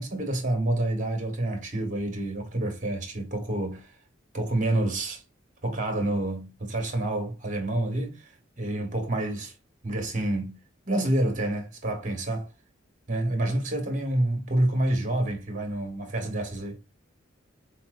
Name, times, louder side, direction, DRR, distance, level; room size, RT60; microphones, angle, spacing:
voice 1, 0.0-3.9 4.3-5.2 5.6-9.5 9.8-10.6 10.8-12.5 13.1-16.8, right 1 dB, 40° right, 1.3 m, -28 dB
4.2 x 2.9 x 2.5 m
head